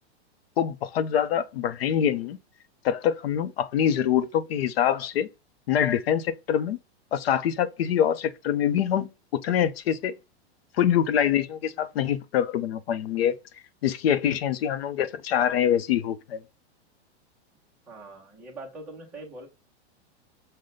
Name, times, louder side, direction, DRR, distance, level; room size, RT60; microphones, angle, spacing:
voice 1, 0.6-2.4 2.8-5.3 5.7-6.8 7.1-10.2 10.8-13.4 13.8-16.4, left 9 dB, 65° left, 0.6 m, -25 dB
voice 2, 17.9-19.5, right 2 dB, 5° right, 0.5 m, -42 dB
6.3 x 2.1 x 3.9 m
supercardioid pair, 180°, 33 cm